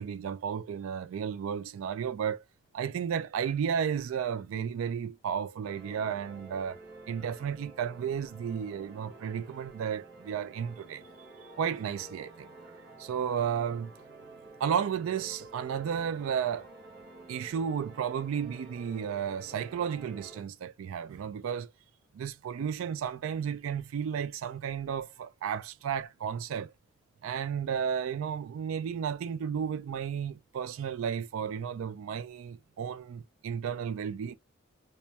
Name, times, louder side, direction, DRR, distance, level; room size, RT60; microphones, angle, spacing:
voice 1, 0.0-2.4 2.7-6.8 7.1-11.1 11.6-12.5 13.0-13.9 14.6-16.7 17.3-21.7 22.1-26.7 27.2-34.3, right 7 dB, 80° right, 0.3 m, -33 dB
sound 1, 5.6-20.4, right 2 dB, 50° right, 0.7 m, -50 dB
2.2 x 2.1 x 2.7 m
head